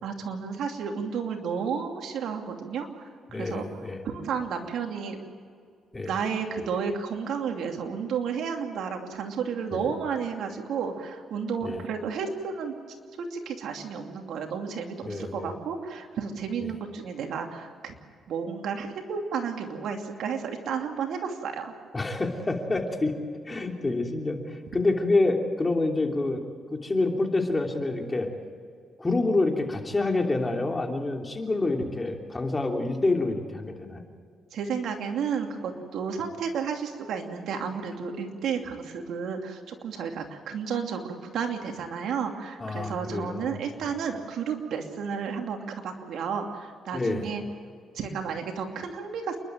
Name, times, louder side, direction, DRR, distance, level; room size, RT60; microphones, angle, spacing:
voice 1, 0.0-3.1 3.4-5.2 6.0-12.7 13.2-17.9 18.3-21.7 34.5-47.4 47.9-49.4, right 6 dB, 75° right, 4 dB, 2.7 m, -32 dB
voice 2, 3.3-4.0 5.9-6.1 9.7-9.9 11.6-11.8 15.0-15.5 16.6-16.7 21.9-23.1 23.5-26.4 26.7-28.3 29.0-34.0 42.6-43.5 46.9-47.3, left 2 dB, 20° left, 2 dB, 3.1 m, -27 dB
28.5 x 12.0 x 9.0 m, 2.1 s
cardioid pair, 90°, 0 cm